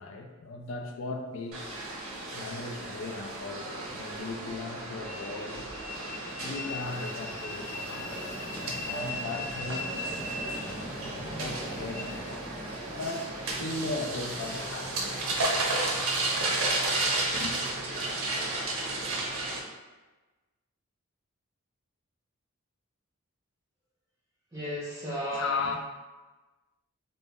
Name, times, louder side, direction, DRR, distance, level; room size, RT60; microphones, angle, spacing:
voice 1, 0.0-1.8 2.3-5.7 6.4-10.2 11.0-12.4 12.9-15.9 17.3-17.5 25.3-25.8, left 3 dB, 60° left, 3 dB, 0.3 m, -37 dB
sound 1, 1.5-19.6, right 2 dB, 75° right, 0.5 m, -33 dB
Train, 5.0-17.5, left 1 dB, 10° left, 0.8 m, -40 dB
voice 2, 24.5-25.7, equal, 15° right, -10 dB, 0.4 m, -35 dB
2.1 x 2.0 x 3.5 m, 1.2 s
head